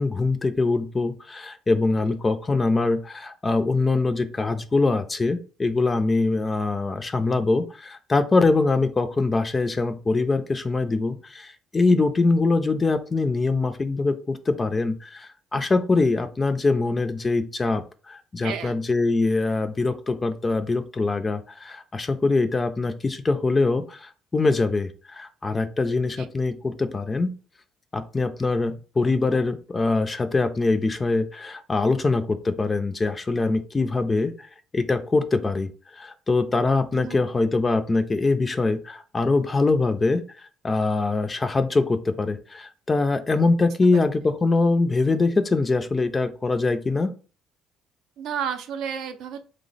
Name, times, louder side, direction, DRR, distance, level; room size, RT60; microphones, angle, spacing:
voice 1, 0.0-27.4 27.9-34.5 34.7-47.1, left 3 dB, 20° left, 10 dB, 0.4 m, -23 dB
voice 2, 18.4-18.7 26.2-26.3 36.9-37.3 48.2-49.4, right 8 dB, 75° right, 7 dB, 0.5 m, -32 dB
3.2 x 2.0 x 3.9 m, 0.37 s
cardioid pair, 120°, 0 cm